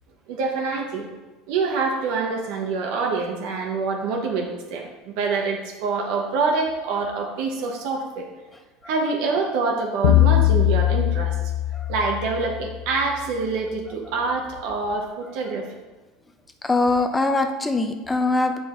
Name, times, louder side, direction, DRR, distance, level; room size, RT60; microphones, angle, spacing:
voice 1, 0.3-1.1 1.5-8.3 8.9-11.4 11.9-15.7, right 4 dB, 70° right, 1 dB, 1.0 m, -26 dB
sound 1, 10.0-12.8, left 14 dB, 90° left, 0.8 m, -20 dB
voice 2, 16.6-18.6, left 2 dB, 15° left, 6 dB, 0.6 m, -22 dB
7.6 x 5.2 x 3.8 m, 1.2 s
supercardioid pair, 115°, 0 cm